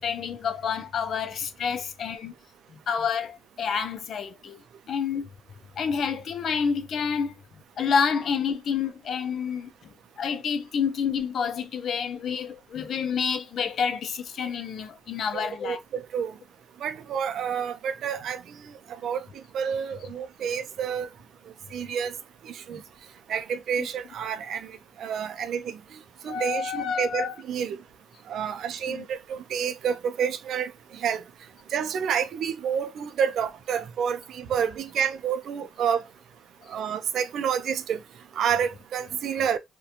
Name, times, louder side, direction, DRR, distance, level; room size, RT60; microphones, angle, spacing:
voice 1, 0.0-2.3 2.7-4.6 4.9-5.3 5.8-7.3 7.8-15.8 22.7-22.8 26.2-27.3 28.9-29.1, left 6 dB, 60° left, 0.4 m, -29 dB
voice 2, 15.3-16.3 16.8-18.8 19.0-19.2 19.5-21.1 21.7-22.1 22.4-22.8 23.3-25.8 26.2-27.8 28.3-31.2 31.7-36.1 36.7-38.0 38.3-39.6, right 7 dB, 70° right, 0.4 m, -29 dB
2.3 x 2.2 x 2.8 m
cardioid pair, 90°, 0 cm